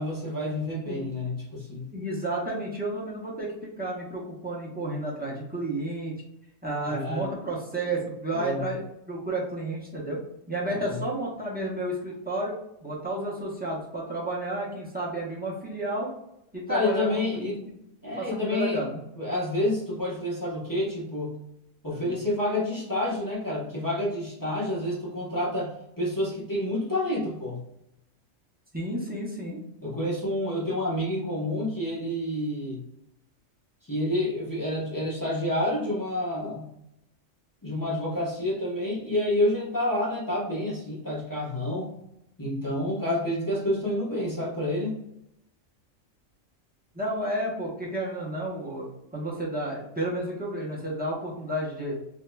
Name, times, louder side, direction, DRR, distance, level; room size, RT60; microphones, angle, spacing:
voice 1, 0.0-1.9 6.8-7.3 8.3-8.8 10.7-11.0 16.7-17.7 18.0-18.8 19.2-21.4 21.8-27.6 29.8-32.8 33.8-36.7 37.6-41.9 42.4-44.9, left 1 dB, 15° left, -7 dB, 0.9 m, -29 dB
voice 2, 1.9-6.1 6.6-8.8 9.1-10.2 10.5-12.6 12.8-16.1 16.5-17.5 18.2-19.0 22.1-22.2 28.7-29.6 46.9-48.8 49.1-52.0, right 1 dB, 10° right, -5 dB, 0.7 m, -31 dB
3.6 x 2.8 x 2.2 m, 0.82 s
omnidirectional pair, 1.4 m